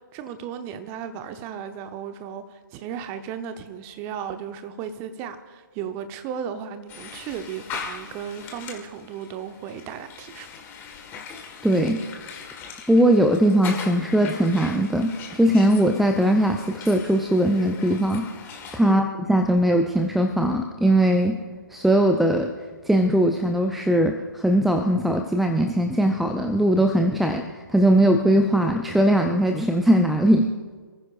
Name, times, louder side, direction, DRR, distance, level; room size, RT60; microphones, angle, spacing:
voice 1, 0.0-10.5 18.8-19.0, right 8 dB, 20° right, 9 dB, 0.9 m, -35 dB
sound 1, 6.9-18.8, left 6 dB, 15° left, 1.6 m, -40 dB
voice 2, 11.6-12.0 12.9-18.3 18.7-21.4 21.7-22.5 22.9-30.5, right 1 dB, ahead, 5 dB, 0.4 m, -20 dB
28.0 x 15.0 x 2.5 m, 1.5 s
figure-of-eight pair, 135°, 12 cm